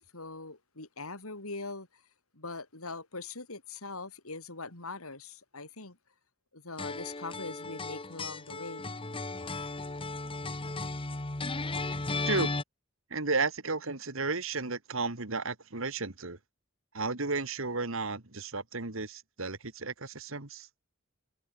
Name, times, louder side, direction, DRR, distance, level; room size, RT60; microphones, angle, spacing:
voice 1, 0.0-2.0 2.3-6.0 6.5-9.0, left 3 dB, 80° left, 4.8 m, -42 dB
sound 1, 6.8-12.6, left 3 dB, 25° left, 1.4 m, -35 dB
voice 2, 13.1-16.4 16.9-20.7, right 3 dB, 65° right, 2.2 m, -33 dB
head